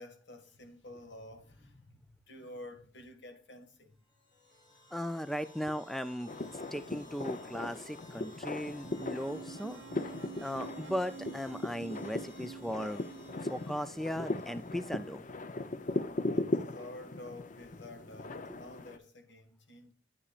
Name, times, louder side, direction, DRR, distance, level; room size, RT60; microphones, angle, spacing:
voice 1, 0.0-4.0 16.2-19.9, left 1 dB, 80° left, 1.9 m, -50 dB
sound 1, 4.1-15.3, left 1 dB, 25° left, 2.5 m, -57 dB
voice 2, 4.9-9.8 10.4-13.1 13.4-15.2, equal, ahead, 0.3 m, -37 dB
sound 2, 6.3-19.0, left 2 dB, 45° left, 0.7 m, -38 dB
sound 3, 8.5-13.6, right 6 dB, 65° right, 0.4 m, -48 dB
10.0 x 9.7 x 2.4 m
head